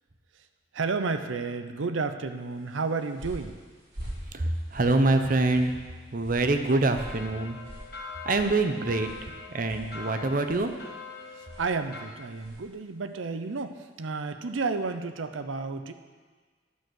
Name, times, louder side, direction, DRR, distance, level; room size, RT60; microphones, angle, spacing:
voice 1, 0.7-3.6 11.3-15.9, right 4 dB, 85° right, 9 dB, 0.6 m, -31 dB
sound 1, 2.6-12.7, equal, 60° right, 3.4 m, -46 dB
voice 2, 4.3-5.8 6.1-7.6 8.2-9.1 9.5-10.7, right 2 dB, 45° right, 7 dB, 0.7 m, -25 dB
sound 2, 7.0-12.1, left 5 dB, 50° left, 1.3 m, -43 dB
11.0 x 6.6 x 6.3 m, 1.5 s
head